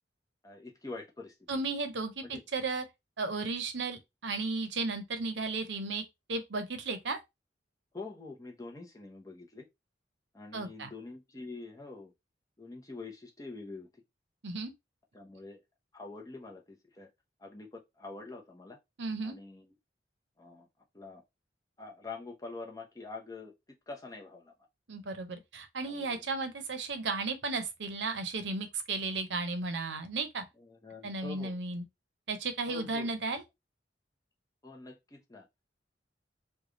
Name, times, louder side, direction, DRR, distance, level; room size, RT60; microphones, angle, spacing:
voice 1, 0.4-1.3 2.3-2.4 7.9-9.7 10.3-12.1 12.6-13.9 15.1-15.6 15.9-17.1 17.4-18.8 19.2-19.7 20.4-20.7 20.9-21.2 21.8-23.5 23.9-24.5 25.9-26.2 30.6-31.5 32.7-33.1 34.6-35.5, left 3 dB, 20° left, 0.7 m, -45 dB
voice 2, 1.5-2.8 3.2-6.0 6.3-7.2 10.5-10.9 14.4-14.7 19.0-19.4 24.9-30.4 31.0-31.8 32.3-33.4, right 3 dB, 75° right, 0.7 m, -34 dB
3.3 x 2.3 x 3.7 m
head